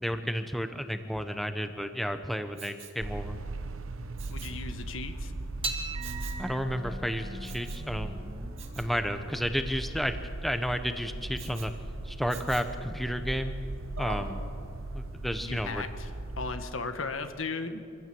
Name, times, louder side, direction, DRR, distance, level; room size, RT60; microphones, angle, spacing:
voice 1, 0.0-3.4 6.4-8.2 8.8-11.7 12.0-13.5 14.0-14.4 14.9-15.8, equal, ahead, 8 dB, 0.8 m, -32 dB
Respiratory sounds, 2.5-3.0 4.2-4.6 6.0-6.5 7.4-7.9 8.6-8.9 11.4-11.7 12.3-12.8 14.0-14.4 14.9-15.0, right 5 dB, 65° right, 2.4 m, -44 dB
sound 1, 3.0-16.6, right 2 dB, 85° right, 1.0 m, -39 dB
voice 2, 4.3-5.3 15.4-16.1 16.4-17.8, left 3 dB, 75° left, 8 dB, 1.5 m, -36 dB
sound 2, 5.6-12.2, right 3 dB, 25° right, 1.6 m, -42 dB
25.5 x 15.5 x 7.7 m, 2.6 s
head